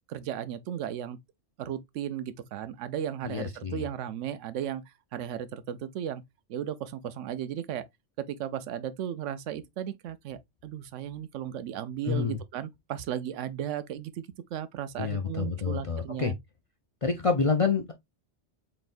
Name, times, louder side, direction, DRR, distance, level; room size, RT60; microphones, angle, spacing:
voice 1, 0.1-1.2 1.6-6.2 6.5-7.8 8.2-16.4, right 10 dB, 90° right, 0.9 m, -35 dB
voice 2, 3.2-3.8 12.0-12.4 15.0-16.3 17.0-17.9, left 5 dB, 50° left, 0.4 m, -28 dB
4.0 x 3.8 x 2.4 m
omnidirectional pair, 1.2 m